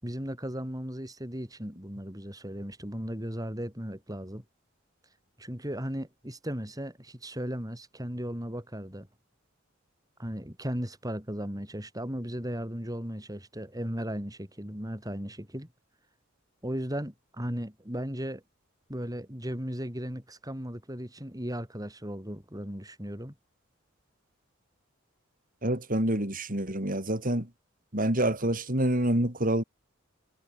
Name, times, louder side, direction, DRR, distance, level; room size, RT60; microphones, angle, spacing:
voice 1, 0.0-4.4 5.4-9.1 10.2-15.7 16.6-18.4 18.9-23.3, equal, 20° right, 6.4 m, -36 dB
voice 2, 25.6-27.5 27.9-29.6, right 1 dB, 45° right, 5.6 m, -27 dB
head